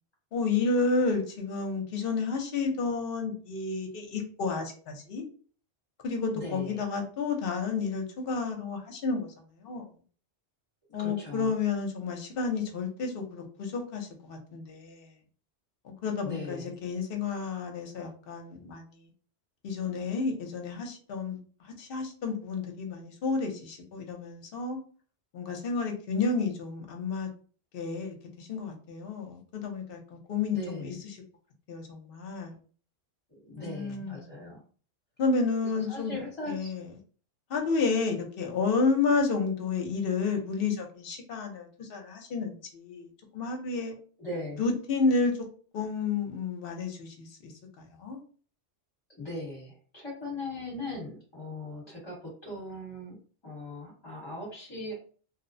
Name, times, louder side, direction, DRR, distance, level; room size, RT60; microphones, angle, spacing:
voice 1, 0.3-4.7 5.1-5.2 6.0-9.3 9.6-9.9 10.9-15.1 15.9-18.8 19.6-21.4 21.8-24.8 25.3-27.3 27.7-30.0 30.3-30.9 31.7-32.5 33.6-34.3 35.2-36.1 36.5-36.8 37.5-43.1 43.3-43.9 44.6-45.3 45.7-47.5 48.0-48.2, left 4 dB, 60° left, 0.8 m, -30 dB
voice 2, 6.3-6.8 11.0-11.5 16.2-16.8 30.5-31.0 33.3-34.6 35.6-36.7 44.2-44.6 49.2-53.2 53.4-54.9, left 2 dB, 25° left, 1.1 m, -39 dB
2.8 x 2.0 x 2.5 m
omnidirectional pair, 1.1 m